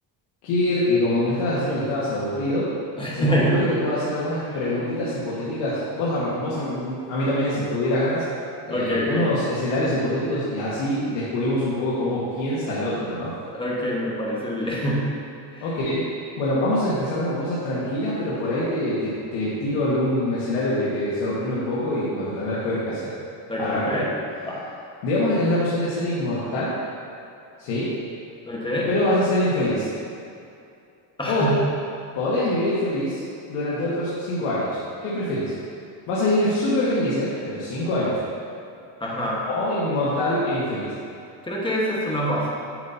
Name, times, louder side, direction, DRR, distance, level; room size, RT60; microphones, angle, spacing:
voice 1, 0.4-2.7 3.1-8.2 8.7-13.3 15.6-16.0 16.4-23.1 23.6-24.0 25.0-26.7 27.6-27.9 28.9-29.9 31.3-31.5 32.1-33.2 33.5-35.5 36.1-38.2 39.4-40.9, left 1 dB, 85° left, -9 dB, 1.6 m, -24 dB
voice 2, 3.0-3.6 4.5-4.6 8.7-9.3 13.5-15.1 15.5-15.7 23.5-24.1 24.4-24.6 28.5-28.9 31.2-31.6 39.0-39.5 41.4-42.6, equal, 10° left, -5 dB, 1.3 m, -25 dB
7.7 x 7.2 x 2.8 m, 2.5 s
cardioid pair, 135°, 49 cm